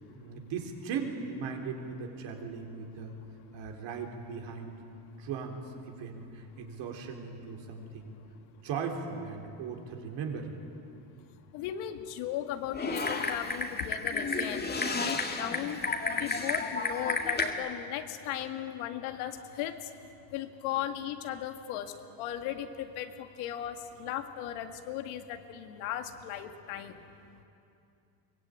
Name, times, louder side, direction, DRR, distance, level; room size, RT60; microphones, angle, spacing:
voice 1, 0.0-3.2 3.5-4.8 5.2-8.1 8.6-10.6, right 5 dB, 60° right, 3 dB, 3.7 m, -38 dB
voice 2, 11.5-15.8 16.2-19.9 20.3-27.1, left 11 dB, 85° left, 6 dB, 2.0 m, -37 dB
Typing, 12.7-17.5, left 3 dB, 20° left, 2.0 m, -31 dB
23.0 x 21.0 x 9.0 m, 2.7 s
cardioid pair, 135°, 47 cm